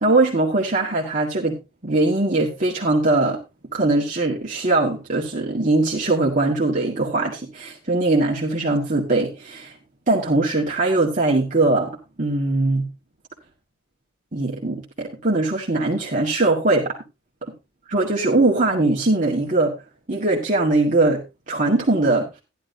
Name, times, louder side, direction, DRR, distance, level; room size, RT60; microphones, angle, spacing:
voice 1, 0.0-1.6 1.8-3.4 3.7-9.7 10.1-12.9 14.3-16.9 17.9-19.7 20.1-22.4, right 2 dB, 35° right, -2 dB, 1.9 m, -21 dB
13.5 x 11.0 x 2.7 m, 0.25 s
head